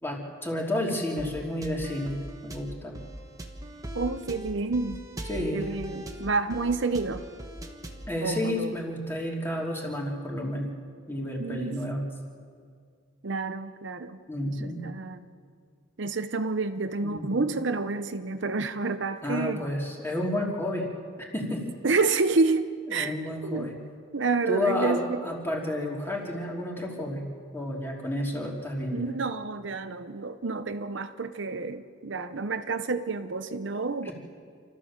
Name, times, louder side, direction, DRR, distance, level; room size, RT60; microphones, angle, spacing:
voice 1, 0.0-2.9 5.3-5.6 8.1-10.7 11.1-12.0 14.3-14.9 17.0-17.5 19.2-20.9 21.2-21.7 22.9-23.7 24.5-27.2 27.5-29.0 34.0-34.1, left 1 dB, 10° left, -2 dB, 3.1 m, -31 dB
sound 1, 1.2-8.1, right 1 dB, 15° right, 1.4 m, -40 dB
voice 2, 3.9-5.0 5.5-7.2 8.2-8.7 11.4-11.8 13.2-14.2 14.6-15.2 16.0-19.6 21.8-23.1 23.4-23.7 24.1-25.2 28.9-34.1, right 3 dB, 60° right, 9 dB, 0.7 m, -29 dB
28.5 x 13.5 x 7.3 m, 2.2 s
head